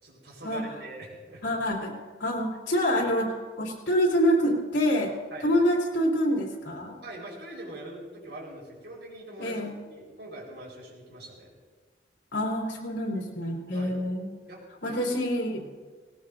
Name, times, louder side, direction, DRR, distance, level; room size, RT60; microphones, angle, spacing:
voice 1, 0.0-1.6 3.0-3.1 5.3-5.5 7.0-11.5 13.7-14.0 14.5-15.2 15.5-15.7, right 1 dB, 75° right, -2 dB, 4.4 m, -43 dB
voice 2, 1.4-5.1 5.4-7.0 9.4-9.7 12.3-14.3 14.8-15.7, equal, 90° left, -2 dB, 3.1 m, -26 dB
18.5 x 18.0 x 2.6 m, 1.4 s
head